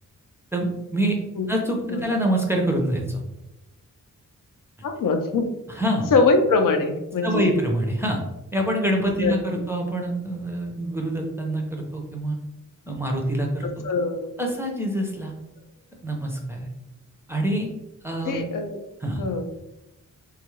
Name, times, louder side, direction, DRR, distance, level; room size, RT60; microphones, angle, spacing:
voice 1, 0.5-1.2 1.5-3.2 5.7-6.1 7.2-8.2 8.5-12.4 12.9-13.8 14.4-15.3 16.0-16.7 17.3-17.7 18.0-18.4 19.0-19.2, right 1 dB, 10° right, 0 dB, 0.4 m, -25 dB
voice 2, 4.8-5.5 6.1-7.5 9.2-9.3 13.8-14.4 18.2-18.8 19.2-19.5, left 3 dB, 75° left, 5 dB, 0.6 m, -22 dB
3.5 x 2.3 x 3.0 m, 0.92 s
wide cardioid pair, 160°, 32 cm